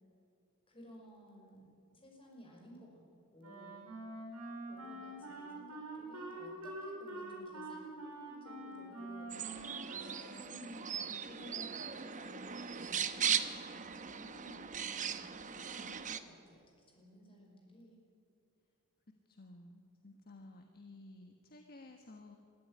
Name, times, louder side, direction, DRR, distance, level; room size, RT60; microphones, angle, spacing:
voice 1, 0.7-1.7 1.9-3.0 3.3-3.9 4.7-9.3 10.3-16.6 16.9-18.0, equal, 25° left, -1 dB, 5.4 m, -56 dB
Wind instrument woodwind instrument, 3.4-10.8, right 2 dB, 85° right, 7.5 m, -46 dB
sound 1, 9.3-16.2, right 7 dB, 35° right, 0.9 m, -38 dB
voice 2, 19.3-22.4, left 2 dB, 45° left, 4 dB, 1.3 m, -54 dB
21.5 x 14.0 x 9.8 m, 2.5 s
head